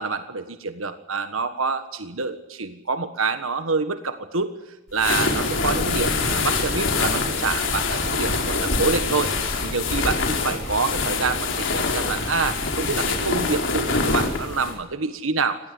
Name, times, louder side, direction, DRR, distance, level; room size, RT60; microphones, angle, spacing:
voice 1, 0.0-4.5 4.9-9.3 9.6-15.6, right 4 dB, 90° right, 9 dB, 1.5 m, -27 dB
sound 1, 4.9-14.8, left 3 dB, 65° left, 4.6 m, -24 dB
25.5 x 19.0 x 8.0 m, 0.98 s
head